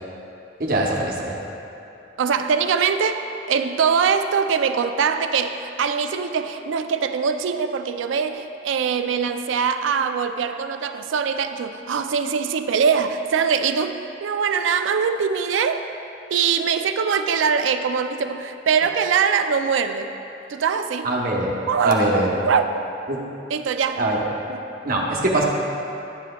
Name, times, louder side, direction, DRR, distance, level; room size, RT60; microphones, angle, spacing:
voice 1, 0.6-1.4 21.0-21.5 21.8-22.4 23.1-23.2 24.0-24.2 24.8-25.4, right 1 dB, 50° right, -2 dB, 0.9 m, -22 dB
voice 2, 2.2-3.2 3.5-15.9 16.3-20.1 20.5-21.1 21.7-22.1 22.4-22.7 23.5-24.0, right 6 dB, 80° right, 8 dB, 0.4 m, -22 dB
10.5 x 7.5 x 2.3 m, 2.9 s
head